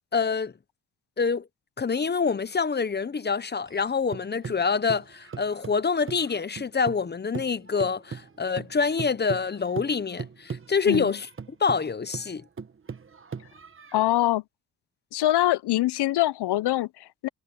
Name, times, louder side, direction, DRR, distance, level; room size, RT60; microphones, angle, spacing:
voice 1, 0.1-0.5 1.2-1.5 1.8-11.3 11.6-12.4, left 5 dB, 25° left, 0.7 m, -26 dB
sound 1, 3.7-7.1 7.3-14.0, right 5 dB, 30° right, 1.1 m, -39 dB
voice 2, 13.9-14.4 15.1-17.3, left 15 dB, 85° left, 0.6 m, -24 dB
cardioid pair, 100°, 39 cm